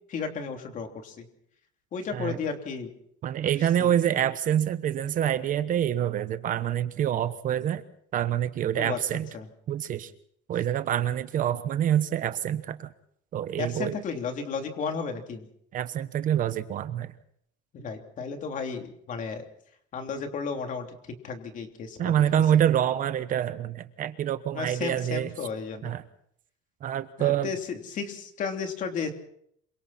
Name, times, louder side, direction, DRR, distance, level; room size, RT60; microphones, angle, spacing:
voice 1, 0.1-1.2 1.9-2.9 3.8-4.0 8.7-9.0 9.3-9.5 13.6-15.4 17.7-19.4 19.9-20.9 21.2-22.2 24.5-25.9 27.2-29.1, left 5 dB, 40° left, 4 dB, 3.2 m, -33 dB
voice 2, 3.2-7.8 8.1-9.3 9.7-10.1 10.5-12.9 13.3-13.9 15.7-17.1 22.0-25.3 25.8-26.0 26.8-27.5, right 10 dB, 40° right, 12 dB, 1.1 m, -26 dB
27.0 x 24.5 x 4.3 m, 0.69 s
cardioid pair, 160°, 21 cm